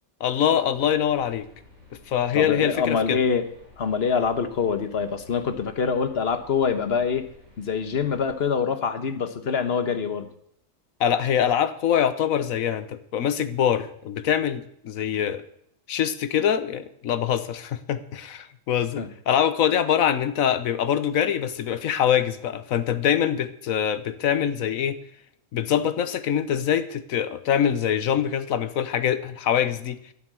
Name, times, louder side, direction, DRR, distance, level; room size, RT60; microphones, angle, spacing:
voice 1, 0.2-1.5 2.1-3.2 11.0-15.5 15.9-25.0 25.5-30.0, left 9 dB, 80° left, 12 dB, 1.3 m, -24 dB
sound 1, 0.7-8.4, left 2 dB, 55° right, 6.7 m, -52 dB
voice 2, 2.3-3.4 3.8-7.3 7.6-10.3 19.0-19.1, left 6 dB, 50° left, 9 dB, 1.4 m, -25 dB
12.5 x 9.2 x 7.6 m, 0.71 s
omnidirectional pair, 1.4 m